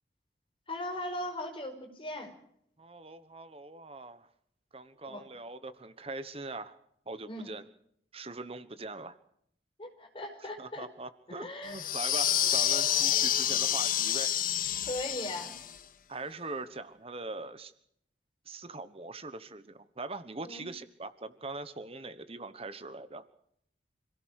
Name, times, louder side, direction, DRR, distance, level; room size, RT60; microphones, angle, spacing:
voice 1, 0.7-2.3 5.0-5.2 7.3-7.5 9.8-10.9 11.3-11.9 14.9-15.5 20.4-20.6, left 1 dB, 30° left, 5 dB, 5.1 m, -38 dB
voice 2, 2.8-4.3 4.7-6.7 7.1-7.7 8.1-9.2 10.6-14.3 16.1-17.7 18.5-23.2, right 3 dB, 30° right, 12 dB, 1.2 m, -42 dB
sound 1, 11.7-15.8, left 11 dB, 50° left, 1.3 m, -28 dB
26.5 x 17.0 x 6.4 m, 0.70 s
head